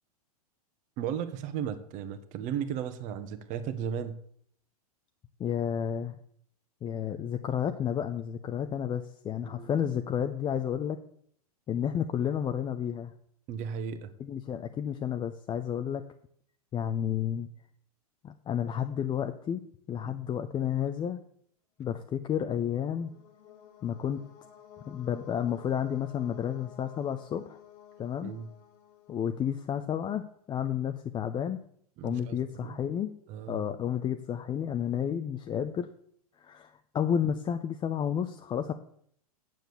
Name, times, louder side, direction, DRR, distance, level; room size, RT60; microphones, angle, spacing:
voice 1, 1.0-4.1 9.4-9.7 13.5-14.1 20.0-20.2 28.2-28.5 32.0-32.8 33.3-33.6, right 8 dB, 40° right, 9 dB, 1.4 m, -35 dB
voice 2, 5.4-6.2 6.8-11.0 11.7-13.1 14.2-16.0 16.7-17.5 18.2-19.6 19.9-21.2 21.8-23.1 23.8-24.2 24.9-27.6 28.0-28.3 29.1-31.6 32.0-33.1 33.5-35.9 36.4-38.7, left 9 dB, 20° left, 7 dB, 0.7 m, -31 dB
sound 1, 22.2-30.0, left 9 dB, 45° left, 1.8 m, -54 dB
9.2 x 7.7 x 6.9 m, 0.64 s
hypercardioid pair, 115°, 20 cm